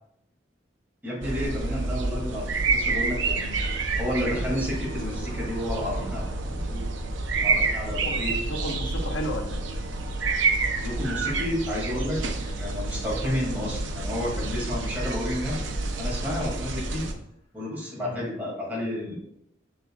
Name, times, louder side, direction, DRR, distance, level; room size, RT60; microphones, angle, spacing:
voice 1, 1.0-6.9 7.4-8.3 10.8-17.1 17.5-19.2, left 1 dB, 10° right, -5 dB, 2.3 m, -31 dB
sound 1, 1.2-17.1, right 3 dB, 80° right, 0.8 m, -28 dB
voice 2, 7.8-9.6 18.0-18.2, left 1 dB, 85° left, 2 dB, 1.1 m, -34 dB
7.4 x 6.6 x 2.3 m, 0.75 s
head